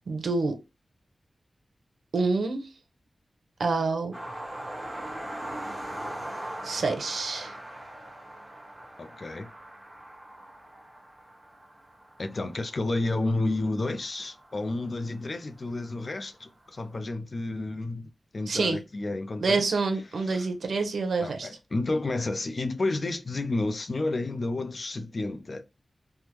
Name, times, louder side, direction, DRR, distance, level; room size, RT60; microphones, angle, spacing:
voice 1, 0.1-0.6 2.1-2.7 3.6-4.1 6.6-7.6 18.5-18.8 19.4-21.5, right 3 dB, 85° right, 0.7 m, -27 dB
sound 1, 4.1-15.2 16.2-16.3 16.6-16.7, right 1 dB, 15° right, 1.2 m, -41 dB
voice 2, 9.0-9.5 12.2-19.6 20.2-20.5 21.2-25.6, left 2 dB, 50° left, 0.5 m, -31 dB
3.5 x 2.1 x 3.0 m
wide cardioid pair, 85°, 0 cm